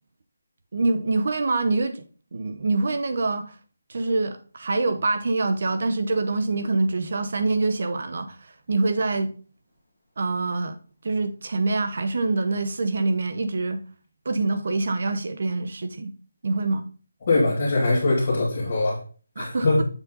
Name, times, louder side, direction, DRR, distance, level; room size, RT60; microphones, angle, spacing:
voice 1, 0.7-2.0 2.3-3.6 3.9-9.3 10.2-10.8 11.0-13.8 14.2-16.1 16.4-16.8 19.4-19.8, right 3 dB, 45° right, 0.7 m, -25 dB
voice 2, 17.3-19.0 19.4-19.8, left 2 dB, 30° left, 2.3 m, -22 dB
7.1 x 4.1 x 3.9 m
figure-of-eight pair, 175°, 0 cm